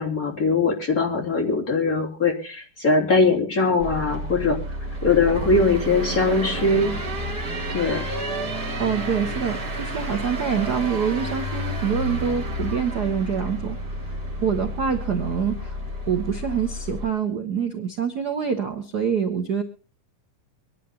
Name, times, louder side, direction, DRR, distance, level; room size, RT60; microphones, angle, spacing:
voice 1, 0.0-4.6 5.0-7.0 7.7-8.0, left 3 dB, 25° left, -1 dB, 3.4 m, -21 dB
sound 1, 3.8-17.1, right 1 dB, 30° right, 3.3 m, -30 dB
voice 2, 8.8-13.8 14.4-15.8 16.1-19.6, right 7 dB, 55° right, 5 dB, 1.1 m, -25 dB
24.5 x 11.0 x 2.9 m, 0.37 s
omnidirectional pair, 3.7 m